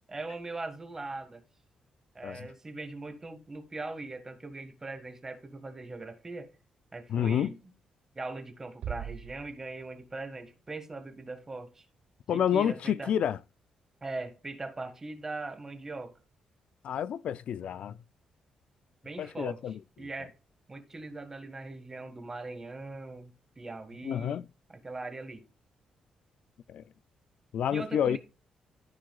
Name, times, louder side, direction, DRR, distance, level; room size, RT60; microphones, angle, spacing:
voice 1, 0.1-1.4 2.2-6.5 6.9-7.6 8.2-11.9 12.3-13.1 14.0-16.2 19.0-19.6 20.0-20.3 20.7-24.4 24.7-25.4 27.7-28.2, right 3 dB, 20° right, 1.7 m, -40 dB
voice 2, 7.1-7.5 12.3-13.4 16.8-18.0 19.2-19.8 24.0-24.5 26.7-26.8 27.5-28.2, left 9 dB, 65° left, 0.4 m, -29 dB
sound 1, 8.8-10.8, right 8 dB, 75° right, 0.5 m, -42 dB
14.0 x 4.8 x 2.4 m
cardioid pair, 115°, 2 cm